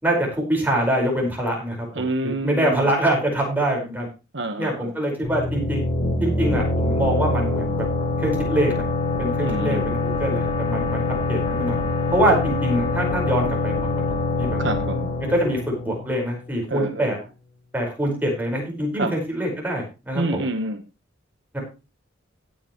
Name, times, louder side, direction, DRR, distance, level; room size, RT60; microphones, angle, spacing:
voice 1, 0.0-4.1 4.6-5.8 6.2-7.9 8.2-8.9 9.2-11.0 11.3-11.8 12.1-13.9 14.4-14.6 15.3-17.2 17.7-20.4 21.5-21.6, right 1 dB, 10° right, -1 dB, 5.0 m, -24 dB
voice 2, 1.9-2.9 4.3-4.8 9.4-9.9 14.6-15.1 16.7-17.1 19.0-19.1 20.1-20.8, right 2 dB, 65° right, 7 dB, 1.3 m, -27 dB
sound 1, 5.2-16.7, left 2 dB, 30° left, 3.6 m, -25 dB
17.0 x 9.0 x 3.1 m, 0.30 s
head